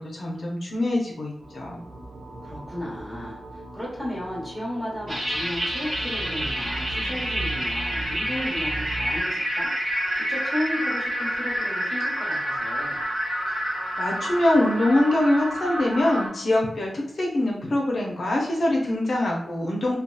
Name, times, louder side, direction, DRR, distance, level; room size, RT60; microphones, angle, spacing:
voice 1, 0.0-1.8 14.0-20.0, left 1 dB, 55° left, -2 dB, 0.5 m, -24 dB
sound 1, 1.4-9.2, right 2 dB, 70° right, 0.5 m, -38 dB
voice 2, 2.4-13.0, left 1 dB, 5° right, -6 dB, 0.9 m, -34 dB
sound 2, 5.1-16.3, equal, 50° right, 1.2 m, -28 dB
2.7 x 2.3 x 2.2 m, 0.80 s
wide cardioid pair, 170°, 0 cm